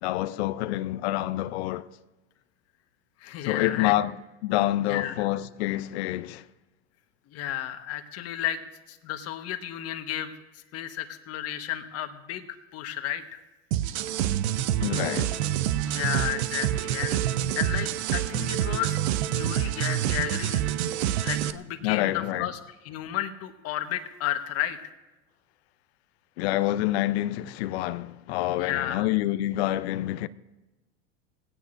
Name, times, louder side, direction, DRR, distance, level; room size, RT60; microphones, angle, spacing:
voice 1, 0.0-1.9 3.4-4.2 4.4-6.4 14.8-15.5 21.8-22.5 26.4-30.3, left 15 dB, 65° left, 0.6 m, -27 dB
voice 2, 3.2-3.9 4.8-5.3 7.3-8.6 8.9-13.4 15.9-17.2 17.5-19.0 19.3-20.8 21.2-24.9 28.6-29.0, left 11 dB, 45° left, 1.4 m, -33 dB
sound 1, 13.7-21.5, right 11 dB, 65° right, 0.8 m, -27 dB
19.5 x 17.0 x 2.6 m
hypercardioid pair, 95°, 35 cm